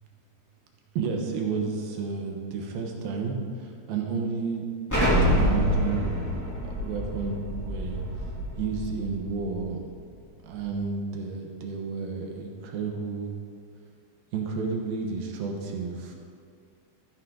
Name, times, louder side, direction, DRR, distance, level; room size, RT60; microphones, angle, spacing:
voice 1, 1.0-4.6 5.2-6.1 6.6-8.0 8.6-9.8 10.4-13.3 14.3-16.2, right 5 dB, 75° right, 1 dB, 2.9 m, -31 dB
Explosion, 4.9-9.6, equal, 5° left, 2.3 m, -26 dB
13.5 x 10.5 x 3.9 m, 2.3 s
omnidirectional pair, 4.6 m